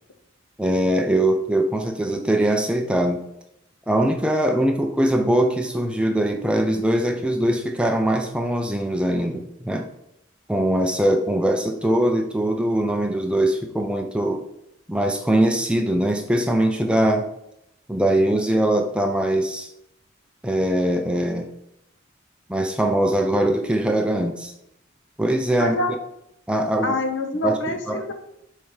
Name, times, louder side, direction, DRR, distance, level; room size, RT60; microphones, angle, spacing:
voice 1, 0.6-3.2 3.9-9.9 10.5-14.4 14.9-17.3 17.9-19.7 20.4-21.5 22.5-24.5 25.2-25.8 26.5-27.0 27.4-28.0, right 1 dB, 5° right, 3 dB, 0.4 m, -22 dB
voice 2, 25.6-26.0 26.8-28.1, left 2 dB, 65° left, 4 dB, 1.0 m, -26 dB
4.9 x 4.5 x 5.5 m, 0.81 s
head